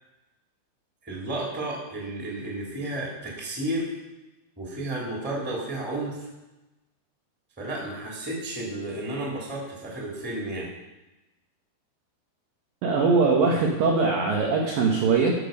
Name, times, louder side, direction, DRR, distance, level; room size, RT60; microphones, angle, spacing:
voice 1, 1.0-3.9 4.6-6.3 7.6-10.7, right 1 dB, 5° right, -4 dB, 1.6 m, -32 dB
voice 2, 12.8-15.4, right 4 dB, 70° right, -1 dB, 2.2 m, -21 dB
13.0 x 6.9 x 5.3 m, 1.0 s
omnidirectional pair, 5.5 m